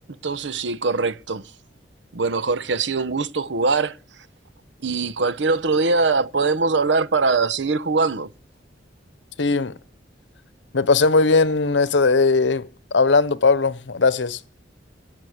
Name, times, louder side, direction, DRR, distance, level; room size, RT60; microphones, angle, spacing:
voice 1, 0.2-1.4 2.1-4.0 4.8-8.3, right 4 dB, 75° right, 0.8 m, -22 dB
voice 2, 9.4-9.8 10.7-14.4, left 4 dB, 80° left, 0.8 m, -19 dB
18.0 x 6.5 x 7.9 m
head